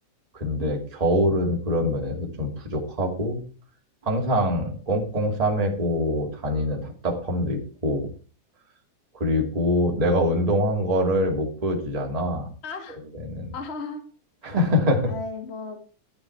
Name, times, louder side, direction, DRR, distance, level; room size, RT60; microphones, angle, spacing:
voice 1, 0.3-3.4 4.0-8.1 9.1-12.5 13.3-13.5 14.4-15.1, equal, 15° right, 1 dB, 2.2 m, -24 dB
voice 2, 12.6-13.0 13.5-14.1 14.4-14.6 15.1-15.8, left 4 dB, 25° left, 5 dB, 1.9 m, -35 dB
12.0 x 9.9 x 4.7 m, 0.37 s
omnidirectional pair, 3.5 m